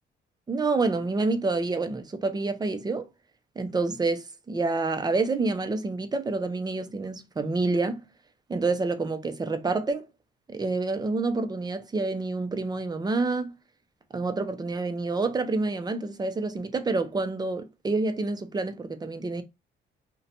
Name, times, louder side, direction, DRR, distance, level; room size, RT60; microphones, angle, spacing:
voice 1, 0.5-3.1 3.6-8.0 8.5-10.1 10.5-13.5 14.1-19.4, right 3 dB, 20° right, 0.4 m, -28 dB
2.6 x 2.1 x 2.6 m
cardioid pair, 90°, 20 cm